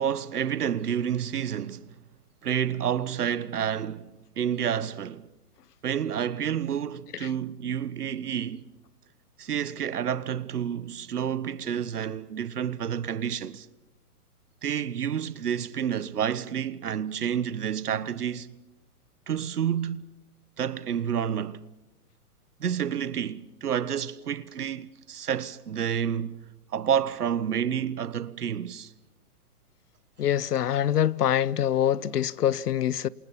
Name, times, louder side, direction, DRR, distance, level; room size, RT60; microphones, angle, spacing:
voice 1, 0.0-1.9 2.4-4.1 4.4-5.3 5.8-8.6 9.4-13.7 14.6-18.5 19.3-20.1 20.6-21.6 22.6-26.4 26.7-28.9, right 8 dB, 85° right, 1.4 m, -29 dB
voice 2, 30.2-33.1, left 10 dB, 90° left, 0.9 m, -25 dB
28.0 x 27.5 x 5.8 m
hypercardioid pair, 160°, 45 cm